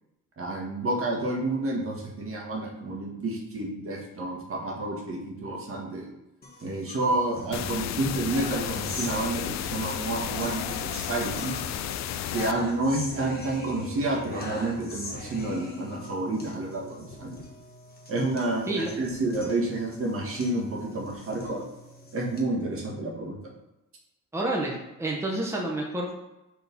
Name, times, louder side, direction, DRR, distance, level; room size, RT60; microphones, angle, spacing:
voice 1, 0.4-6.1 6.6-11.6 12.3-17.4 18.1-21.6 22.1-23.4, right 2 dB, 45° right, -1 dB, 1.7 m, -29 dB
sound 1, 6.4-22.4, left 1 dB, 30° left, 1.5 m, -41 dB
sound 2, 7.5-12.5, left 11 dB, 65° left, 0.4 m, -33 dB
voice 2, 24.3-26.1, right 1 dB, 10° right, -2 dB, 1.2 m, -29 dB
4.9 x 3.8 x 5.4 m, 0.94 s
cardioid pair, 90°, 30 cm